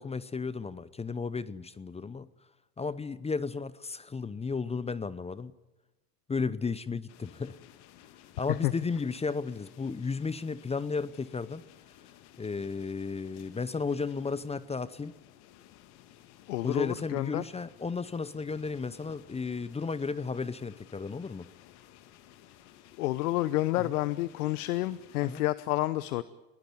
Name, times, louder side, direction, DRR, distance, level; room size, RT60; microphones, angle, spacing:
voice 1, 0.0-2.3 2.8-5.5 6.3-7.6 8.4-11.6 12.4-15.1 16.6-21.5 23.8-23.9 25.2-25.4, left 4 dB, 15° left, 0.8 m, -34 dB
sound 1, 7.1-25.4, left 12 dB, 60° left, 1.9 m, -56 dB
voice 2, 16.5-17.4 23.0-26.2, left 17 dB, 75° left, 0.9 m, -29 dB
21.5 x 18.0 x 9.5 m
hypercardioid pair, 90°, 44 cm